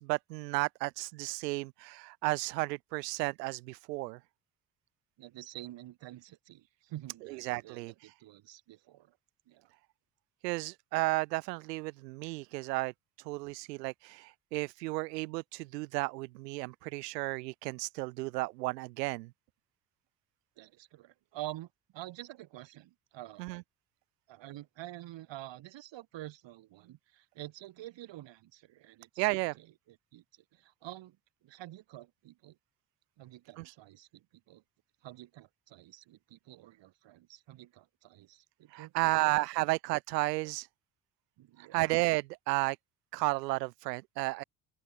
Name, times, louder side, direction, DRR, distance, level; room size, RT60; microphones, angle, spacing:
voice 1, 0.0-4.2 7.4-8.1 10.4-12.9 13.3-19.3 23.4-23.6 29.2-29.6 33.6-33.7 38.7-40.7 41.7-42.8 43.1-44.4, right 23 dB, 80° right, 0.8 m, -33 dB
voice 2, 5.2-9.2 9.5-9.7 20.6-23.5 24.3-30.2 30.5-31.2 31.4-32.6 33.2-34.6 35.0-39.7 41.4-41.9, right 15 dB, 60° right, 7.2 m, -48 dB
open air
hypercardioid pair, 55°, 49 cm